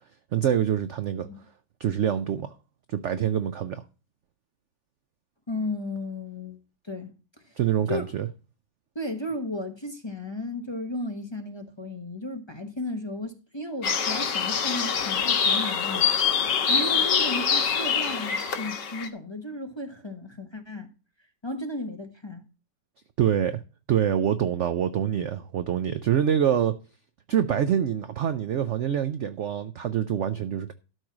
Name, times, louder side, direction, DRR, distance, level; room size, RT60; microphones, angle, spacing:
voice 1, 0.3-1.3 1.8-2.5 2.9-3.8 7.6-8.3 23.2-23.6 23.9-26.7 27.3-30.7, right 9 dB, 65° right, 0.7 m, -25 dB
voice 2, 5.5-6.6 6.8-7.1 7.4-7.6 7.9-8.1 8.9-16.1 16.7-20.9 21.4-22.4, left 2 dB, 20° left, 0.9 m, -34 dB
sound 1, 13.8-19.1, left 6 dB, 80° left, 1.9 m, -25 dB
12.5 x 4.6 x 5.9 m
omnidirectional pair, 1.9 m